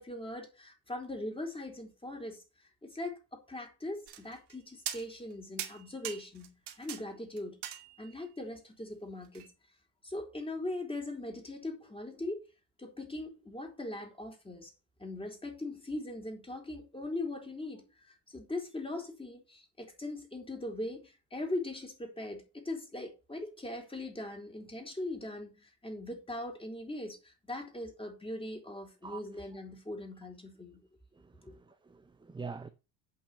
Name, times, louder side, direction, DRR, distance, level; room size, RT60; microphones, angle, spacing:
voice 1, 0.0-2.4 2.8-7.6 8.0-9.5 10.0-12.4 12.8-14.7 15.0-30.8 31.4-31.5, left 1 dB, 10° left, 4.2 m, -40 dB
sound 1, 4.1-4.5 4.9-5.3 5.6-7.0 7.4-8.2 9.3-9.5, right 10 dB, 50° right, 2.3 m, -41 dB
voice 2, 31.1-32.7, right 5 dB, 10° right, 0.8 m, -45 dB
8.8 x 5.7 x 6.7 m
hypercardioid pair, 65°, 49 cm